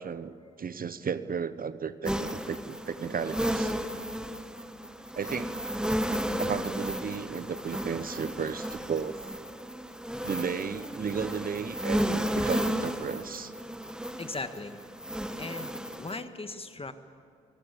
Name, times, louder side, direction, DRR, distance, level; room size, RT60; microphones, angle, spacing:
voice 1, 0.0-3.7 5.1-5.5 6.4-9.2 10.2-13.5, right 6 dB, 45° right, 13 dB, 0.9 m, -34 dB
sound 1, 2.1-16.2, equal, 5° right, 1.4 m, -33 dB
voice 2, 14.2-14.8 15.4-16.9, left 3 dB, 30° left, 9 dB, 1.8 m, -38 dB
27.5 x 17.5 x 8.5 m, 2.3 s
supercardioid pair, 50°, 20 cm